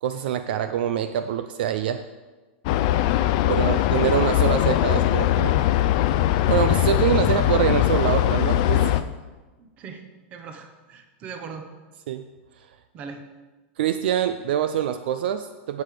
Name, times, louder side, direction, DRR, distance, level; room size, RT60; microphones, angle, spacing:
voice 1, 0.0-2.0 3.5-5.6 6.5-9.0 12.1-12.2 13.8-15.8, right 10 dB, 55° right, 10 dB, 0.5 m, -25 dB
sound 1, 2.7-9.0, left 13 dB, 35° left, 0.4 m, -21 dB
voice 2, 3.5-3.9 9.6-10.0 10.3-11.7 12.9-13.2, right 5 dB, 20° right, 6 dB, 0.9 m, -39 dB
7.9 x 7.6 x 6.7 m, 1.3 s
supercardioid pair, 175°, 6 cm